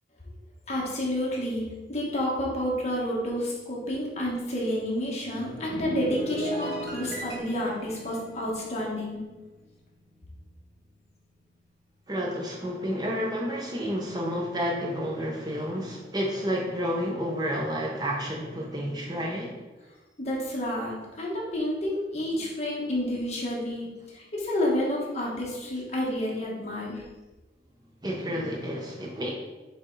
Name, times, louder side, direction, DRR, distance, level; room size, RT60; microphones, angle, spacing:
voice 1, 0.7-9.2 20.2-27.0, left 1 dB, 40° left, -4 dB, 1.5 m, -30 dB
sound 1, 5.1-9.8 10.0-10.4, equal, 60° right, 1.6 m, -37 dB
voice 2, 12.1-19.6 28.0-29.3, equal, 25° right, -1 dB, 0.8 m, -30 dB
7.6 x 3.5 x 4.0 m, 1.2 s
head